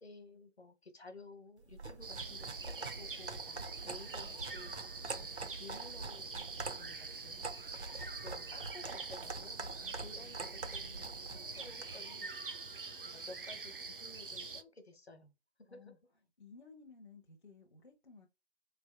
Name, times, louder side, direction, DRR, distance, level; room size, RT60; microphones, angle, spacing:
voice 1, 0.0-3.6 3.8-7.5 8.2-9.7 10.0-12.3 13.0-15.3 15.6-16.0, left 2 dB, 70° left, 1.2 m, -54 dB
sound 1, 1.7-12.0, right 3 dB, 80° right, 0.9 m, -45 dB
sound 2, 2.0-14.6, right 4 dB, 55° right, 0.5 m, -45 dB
voice 2, 9.8-10.4 15.7-16.0 16.4-18.3, left 4 dB, 50° left, 0.7 m, -57 dB
3.9 x 3.3 x 2.3 m
figure-of-eight pair, 165°, 33 cm